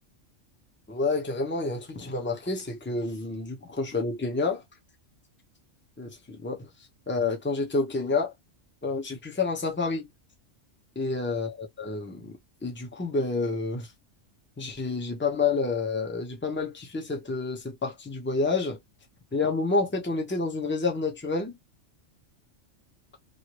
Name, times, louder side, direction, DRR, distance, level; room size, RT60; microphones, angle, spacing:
voice 1, 0.9-4.6 6.0-6.7 7.1-8.3 8.8-10.1 11.0-12.4 12.6-13.9 14.6-18.8 19.3-21.6, left 3 dB, 10° left, 0.7 m, -29 dB
2.9 x 2.5 x 3.0 m
omnidirectional pair, 1.3 m